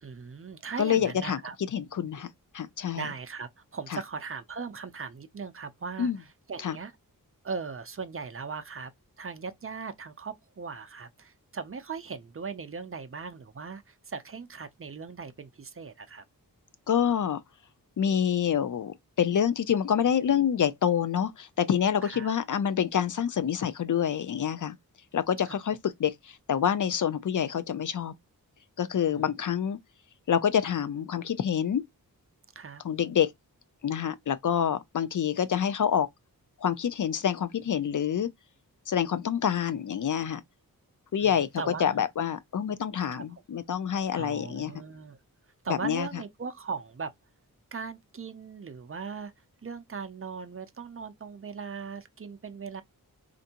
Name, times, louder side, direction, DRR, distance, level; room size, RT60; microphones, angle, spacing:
voice 1, 0.0-1.6 2.9-6.9 7.4-8.9 9.2-16.2 22.0-22.3 25.5-25.6 29.1-29.2 32.6-32.8 41.2-42.0 43.1-43.2 44.1-45.2 45.6-47.1 47.7-49.3 49.6-52.8, right 5 dB, 35° right, 0.5 m, -39 dB
voice 2, 0.8-1.4 1.7-2.3 2.5-3.1 3.9-4.0 6.0-6.2 6.6-6.8 16.9-17.4 18.0-24.8 25.1-28.1 28.8-29.8 30.3-31.8 32.8-33.3 33.8-36.1 36.6-38.3 38.9-40.4 41.1-41.5 41.8-44.7 45.7-46.1, left 8 dB, 55° left, 0.4 m, -27 dB
4.3 x 2.5 x 2.8 m
wide cardioid pair, 95°, 37 cm